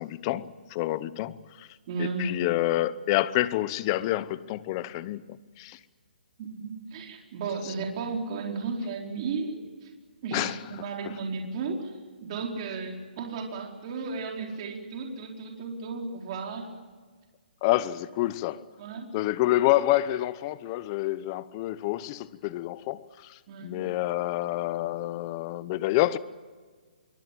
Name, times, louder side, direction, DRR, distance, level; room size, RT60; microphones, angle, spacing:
voice 1, 0.0-1.7 2.0-5.8 10.3-10.6 17.6-18.6 19.1-26.2, left 16 dB, 25° left, 0.9 m, -28 dB
voice 2, 1.9-2.4 6.4-9.9 10.2-11.9 12.2-16.7 18.8-19.1 23.5-23.8, right 4 dB, 35° right, 4.6 m, -34 dB
26.0 x 23.5 x 7.6 m
hypercardioid pair, 155°, 5 cm